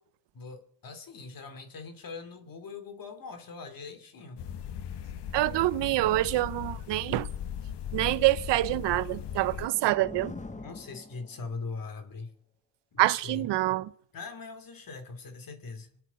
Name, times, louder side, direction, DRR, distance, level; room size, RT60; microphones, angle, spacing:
voice 1, 0.3-4.4 10.5-12.3 12.9-13.5 14.1-16.0, left 4 dB, 55° left, 2.7 m, -41 dB
sound 1, 4.4-9.7, left 9 dB, 75° left, 1.1 m, -38 dB
voice 2, 5.3-7.3 7.9-10.3 13.0-13.9, right 17 dB, 85° right, 0.7 m, -26 dB
sound 2, 8.9-11.8, left 3 dB, 20° left, 1.1 m, -45 dB
26.5 x 8.9 x 5.6 m
cardioid pair, 90°, 41 cm